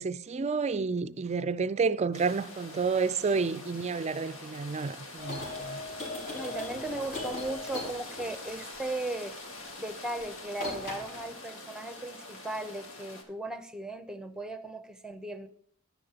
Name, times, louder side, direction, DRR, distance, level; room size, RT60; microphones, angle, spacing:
voice 1, 0.0-5.8, right 4 dB, 35° right, 0.4 m, -30 dB
sound 1, 2.1-13.2, left 2 dB, 85° left, 2.0 m, -45 dB
sound 2, 5.2-8.6 10.1-10.3 10.5-11.3, left 2 dB, 55° left, 4.8 m, -39 dB
voice 2, 6.3-9.4 9.8-15.5, right 2 dB, 5° right, 0.7 m, -37 dB
11.5 x 10.0 x 2.9 m
head